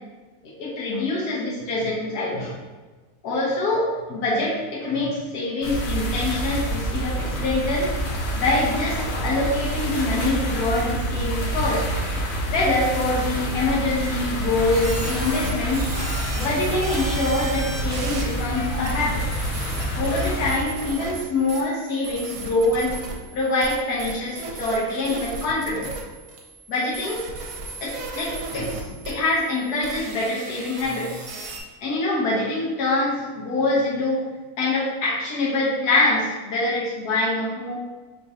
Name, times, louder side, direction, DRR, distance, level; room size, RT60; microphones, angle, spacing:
voice 1, 0.6-2.6 3.2-7.9 8.3-11.9 12.5-19.2 19.9-23.0 23.3-25.9 26.7-27.2 27.8-31.2 31.8-34.2 34.6-37.8, left 2 dB, 80° left, -5 dB, 1.5 m, -25 dB
sound 1, 5.6-20.5, right 1 dB, 55° left, 0.9 m, -27 dB
sound 2, 14.7-31.6, right 3 dB, 65° right, 1.1 m, -36 dB
3.6 x 2.8 x 4.7 m, 1.3 s
omnidirectional pair, 1.6 m